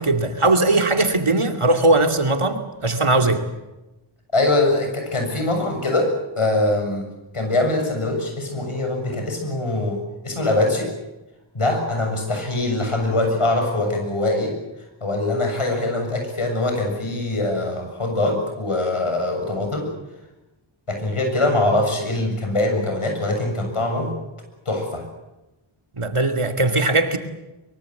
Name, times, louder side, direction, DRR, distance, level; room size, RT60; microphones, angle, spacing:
voice 1, 0.0-3.4 26.0-27.2, right 2 dB, 80° right, 6 dB, 2.7 m, -19 dB
voice 2, 4.3-7.1 7.3-10.9 11.5-14.6 15.0-19.9 20.9-24.1 24.7-25.0, left 2 dB, 90° left, 3 dB, 7.3 m, -23 dB
23.5 x 23.0 x 8.0 m, 1.0 s
wide cardioid pair, 40°, 50 cm